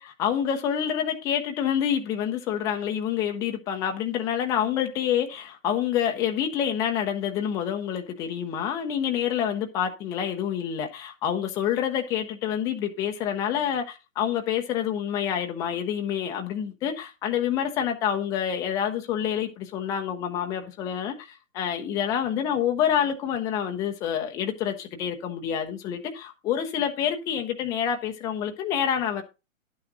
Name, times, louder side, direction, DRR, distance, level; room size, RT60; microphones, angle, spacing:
voice 1, 0.0-29.2, left 9 dB, 10° left, 0.5 m, -27 dB
11.0 x 8.9 x 2.5 m
figure-of-eight pair, 120°, 41 cm